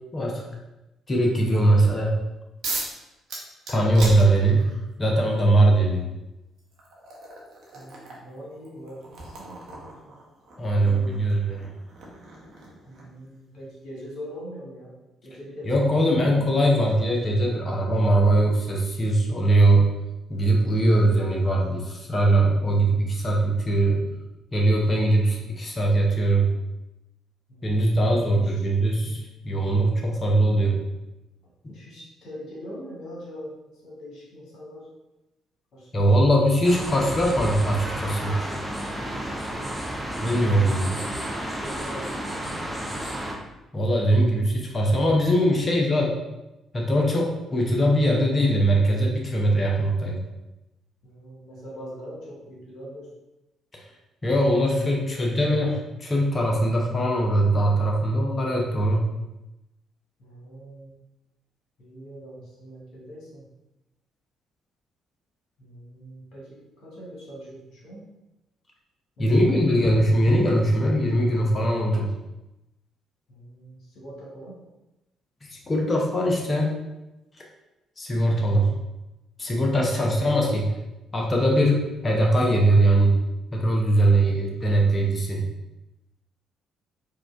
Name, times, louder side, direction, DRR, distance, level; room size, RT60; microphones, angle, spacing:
voice 1, 1.1-2.2 3.7-4.6 5.0-6.0 10.6-11.7 15.7-19.9 20.3-24.1 24.5-26.5 27.6-30.8 35.9-38.4 40.2-40.9 43.7-46.2 46.7-50.2 54.2-59.1 69.2-72.1 75.5-76.8 78.0-78.7 79.4-80.7 81.1-83.2 83.5-85.5, right 1 dB, 30° left, -1 dB, 0.7 m, -21 dB
sound 1, 2.6-3.0 3.3-4.9 6.0-6.1 6.6-13.2, right 2 dB, 60° right, 0.8 m, -38 dB
voice 2, 7.7-10.2 10.8-11.2 12.8-15.0 15.2-16.6 27.5-27.7 28.1-28.7 31.4-34.9 35.7-36.5 39.4-39.9 40.8-42.6 51.0-53.1 54.6-55.4 60.2-60.9 61.8-63.4 65.6-68.0 69.2-69.7 73.3-74.6 78.3-78.9 84.2-84.7, equal, 60° left, -5 dB, 1.3 m, -42 dB
sound 2, 36.6-43.4, right 1 dB, 10° right, 0.6 m, -32 dB
4.5 x 2.3 x 2.5 m, 0.97 s
figure-of-eight pair, 45°, 0 cm